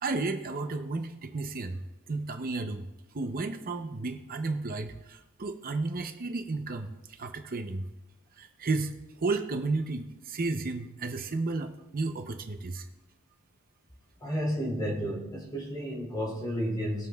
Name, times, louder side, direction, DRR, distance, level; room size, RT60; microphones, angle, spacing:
voice 1, 0.0-1.8 2.1-2.9 3.1-6.9 7.2-7.9 8.4-8.9 9.2-12.9, right 3 dB, 45° right, 7 dB, 0.7 m, -32 dB
voice 2, 14.2-17.1, equal, 20° left, -4 dB, 2.7 m, -32 dB
21.0 x 7.4 x 2.3 m, 1.0 s
head